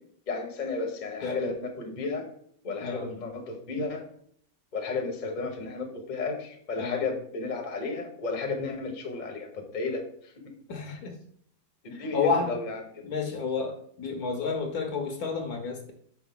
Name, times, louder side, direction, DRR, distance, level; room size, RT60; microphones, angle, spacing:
voice 1, 0.3-2.3 2.6-4.1 4.7-10.3 11.8-13.0, left 3 dB, 30° left, 2 dB, 0.9 m, -33 dB
voice 2, 10.7-11.1 11.9-12.5 13.0-15.9, left 5 dB, 65° left, 3 dB, 1.2 m, -30 dB
5.9 x 4.9 x 3.6 m, 0.63 s
omnidirectional pair, 1.9 m